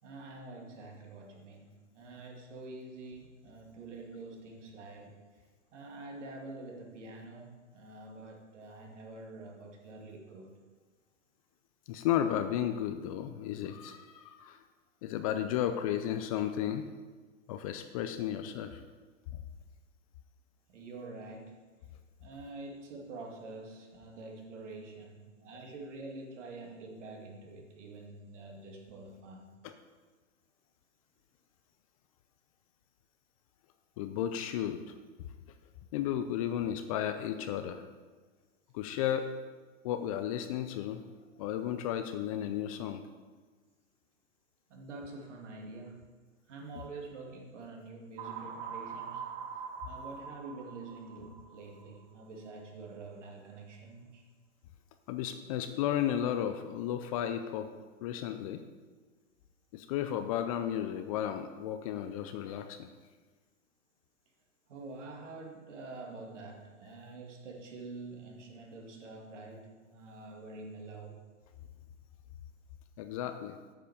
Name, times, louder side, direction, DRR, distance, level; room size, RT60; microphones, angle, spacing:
voice 1, 0.0-10.6 20.7-21.6 22.2-29.6 44.7-46.2 46.5-54.2 64.7-71.2, right 3 dB, 70° right, 1 dB, 2.4 m, -47 dB
voice 2, 11.9-14.6 15.0-16.9 17.5-18.8 19.3-19.4 29.6-29.7 34.0-34.8 35.9-37.8 38.7-39.4 39.8-41.0 41.4-43.0 55.1-57.7 58.0-58.6 59.7-62.9 73.0-73.6, left 10 dB, 30° left, 9 dB, 0.4 m, -33 dB
sound 1, 48.2-52.0, right 6 dB, 40° right, 1.0 m, -43 dB
8.6 x 5.6 x 6.6 m, 1.4 s
hypercardioid pair, 130°, 38 cm